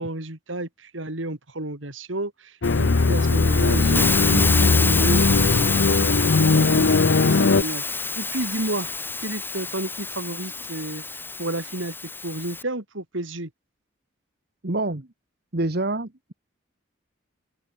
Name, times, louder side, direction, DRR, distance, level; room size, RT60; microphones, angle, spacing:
voice 1, 0.0-2.3 2.8-5.8 6.4-6.9 7.2-8.9 9.2-11.0 11.4-11.9 12.2-13.5, right 1 dB, 80° right, 3.6 m, -31 dB
sound 1, 2.6-7.6, left 3 dB, 65° left, 0.7 m, -19 dB
Hiss, 2.6-12.6, left 4 dB, 10° left, 1.8 m, -28 dB
voice 2, 14.6-15.1 15.5-16.3, right 2 dB, 55° right, 1.5 m, -26 dB
open air
head